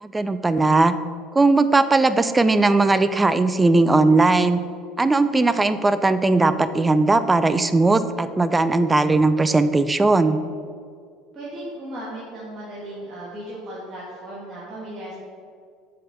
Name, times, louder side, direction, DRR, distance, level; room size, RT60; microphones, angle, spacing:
voice 1, 0.0-0.9 1.3-4.6 5.0-10.4, right 3 dB, 10° right, 11 dB, 0.3 m, -18 dB
voice 2, 11.3-15.1, right 1 dB, 35° right, -7 dB, 1.7 m, -36 dB
6.6 x 4.1 x 6.5 m, 2.2 s
supercardioid pair, 130°, 0 cm